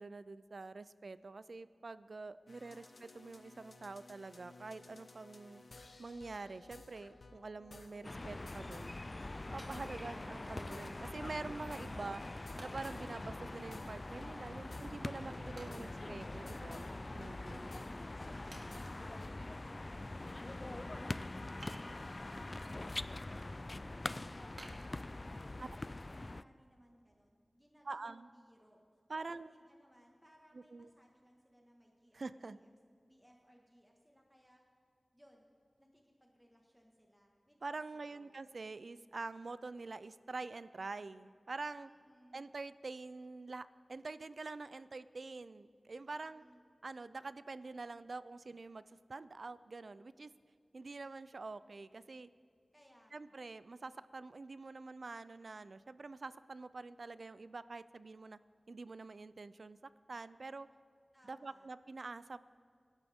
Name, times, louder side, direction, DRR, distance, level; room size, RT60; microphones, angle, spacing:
voice 1, 0.0-2.8 3.2-5.6 6.0-9.0 9.5-12.2 12.6-17.7 25.6-25.7 27.9-28.3 29.1-29.5 30.5-30.9 32.1-32.6 37.6-41.9 42.3-46.4 46.8-50.3 50.7-52.3 53.1-58.4 58.7-59.8 60.1-60.7 61.2-62.4, right 3 dB, 70° right, 15 dB, 0.4 m, -46 dB
retro digital punk madcool loop, 2.5-19.3, left 2 dB, 75° left, 1.0 m, -56 dB
voice 2, 2.6-3.1 17.3-21.6 22.2-32.7 33.0-34.6 35.1-35.5 35.8-37.6 37.9-38.5 41.8-42.4 46.1-46.6 52.7-53.4 61.1-61.7, equal, 5° right, 0 dB, 1.7 m, -66 dB
sound 1, 8.0-26.4, left 2 dB, 40° left, 0.3 m, -44 dB
Wood, 9.6-10.7 11.2-11.3 12.6-13.0 15.6-16.7 17.0-17.1 17.8-17.9 18.5-19.2 21.6-22.3 22.8-23.3 23.7-23.8 24.6-25.6 26.1-26.2, right 1 dB, 45° right, 2.4 m, -55 dB
25.5 x 12.0 x 3.6 m, 2.1 s
wide cardioid pair, 65°, 0 cm